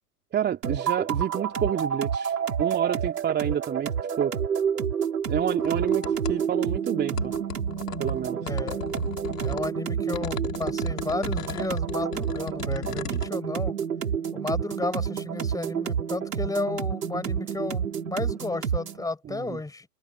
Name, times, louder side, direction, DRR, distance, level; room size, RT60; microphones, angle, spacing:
voice 1, 0.3-3.9 4.2-4.3 5.3-7.3 8.0-8.4 12.9-13.2 19.3-19.6, right 9 dB, 20° right, 3.0 m, -29 dB
sound 1, 0.6-19.1, right 7 dB, 80° right, 7.1 m, -29 dB
sound 2, 5.2-6.4 7.2-9.7 10.1-13.3, left 9 dB, 70° left, 6.6 m, -37 dB
voice 2, 8.4-8.9 9.4-13.7 14.3-19.9, left 3 dB, 5° left, 7.5 m, -33 dB
hypercardioid pair, 115°, 47 cm